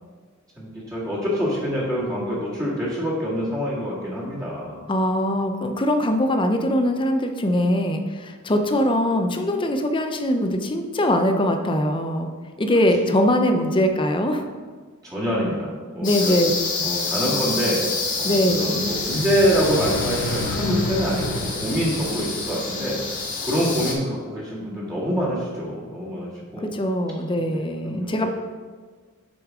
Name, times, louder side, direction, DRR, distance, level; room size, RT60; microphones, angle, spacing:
voice 1, 0.6-4.9 15.0-16.4 16.8-17.8 18.2-26.7 27.5-28.3, equal, 15° right, -8 dB, 1.8 m, -25 dB
voice 2, 4.9-12.3 12.6-14.5 16.0-16.5 18.2-18.8 26.6-28.3, left 1 dB, 25° left, 6 dB, 0.6 m, -22 dB
sound 1, 16.0-23.9, left 3 dB, 40° left, 1.4 m, -28 dB
sound 2, 18.6-23.7, left 1 dB, 60° left, 0.8 m, -32 dB
7.9 x 5.2 x 3.6 m, 1.5 s
head